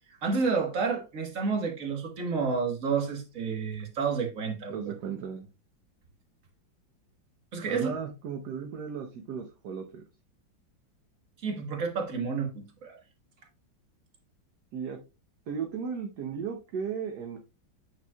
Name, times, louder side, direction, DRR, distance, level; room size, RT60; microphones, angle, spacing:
voice 1, 0.2-4.7 7.5-7.9 11.4-13.0, right 5 dB, 45° right, 1.7 m, -30 dB
voice 2, 4.7-5.5 7.6-10.0 14.7-15.0 15.5-17.4, right 6 dB, 60° right, 1.3 m, -35 dB
9.0 x 5.5 x 2.3 m
omnidirectional pair, 2.2 m